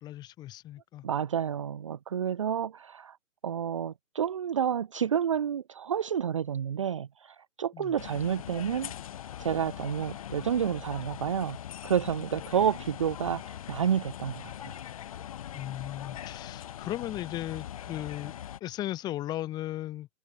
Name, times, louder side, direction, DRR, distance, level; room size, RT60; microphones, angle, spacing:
voice 1, 0.0-1.0 7.7-7.9 15.5-18.3 18.6-20.1, left 14 dB, 10° left, 3.0 m, -36 dB
voice 2, 1.0-3.2 3.4-8.9 9.4-11.6 11.8-14.8, right 8 dB, 25° right, 1.0 m, -30 dB
sound 1, 8.0-18.6, left 11 dB, 25° left, 1.8 m, -41 dB
open air
hypercardioid pair, 165°, 41 cm